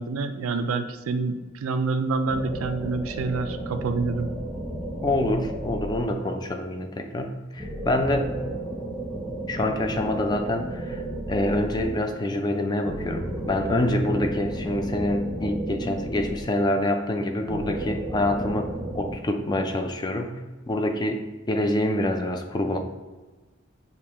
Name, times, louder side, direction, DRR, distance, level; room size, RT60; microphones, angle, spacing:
voice 1, 0.0-4.3, right 3 dB, 85° right, 9 dB, 0.4 m, -27 dB
sound 1, 2.3-6.5 7.6-12.2 12.8-16.8 17.4-19.1, right 1 dB, 5° right, 0.8 m, -33 dB
voice 2, 5.0-8.3 9.5-11.0 11.3-20.4 20.7-22.8, left 1 dB, 20° left, 5 dB, 0.3 m, -26 dB
6.7 x 2.2 x 2.9 m, 1.2 s
head